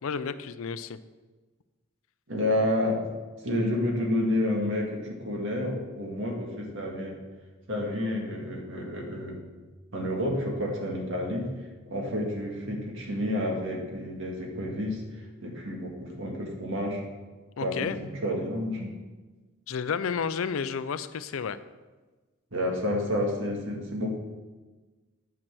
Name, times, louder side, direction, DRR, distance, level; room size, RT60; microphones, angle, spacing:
voice 1, 0.0-1.0 17.6-18.0 19.7-21.6, left 6 dB, 70° left, 13 dB, 0.5 m, -31 dB
voice 2, 2.3-3.0 3.4-7.2 7.7-9.4 9.9-11.5 11.9-15.0 15.4-17.0 17.6-18.9 22.5-24.1, left 1 dB, 60° right, 0 dB, 1.9 m, -29 dB
8.8 x 6.0 x 6.1 m, 1.3 s
head